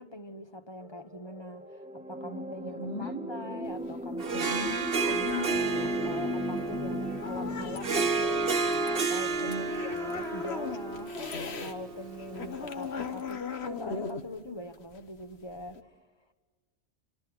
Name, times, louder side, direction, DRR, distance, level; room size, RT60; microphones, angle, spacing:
voice 1, 0.0-1.7 1.9-4.6 5.1-8.5 8.8-11.3 11.6-15.9, left 1 dB, 25° left, 8 dB, 1.4 m, -42 dB
sound 1, 0.8-11.5 12.4-12.5, equal, 5° right, 0.9 m, -38 dB
voice 2, 2.7-3.2 4.3-4.9 9.4-9.7, equal, 90° right, 10 dB, 2.1 m, -38 dB
sound 2, 3.6-11.7 12.1-15.8, left 5 dB, 65° left, 1.6 m, -40 dB
Harp, 4.2-12.8, right 4 dB, 55° right, 1.5 m, -31 dB
28.5 x 26.0 x 8.0 m, 1.4 s
omnidirectional pair, 1.2 m